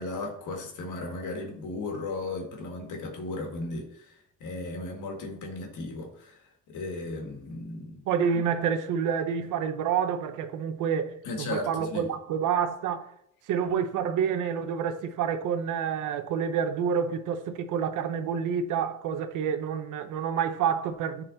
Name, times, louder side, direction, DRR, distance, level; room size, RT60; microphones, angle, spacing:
voice 1, 0.0-8.0 11.2-12.1, left 2 dB, 80° left, 1.8 m, -36 dB
voice 2, 8.1-13.1 13.5-21.2, right 7 dB, 85° right, 0.8 m, -28 dB
9.8 x 4.1 x 4.0 m
cardioid pair, 90°, 30 cm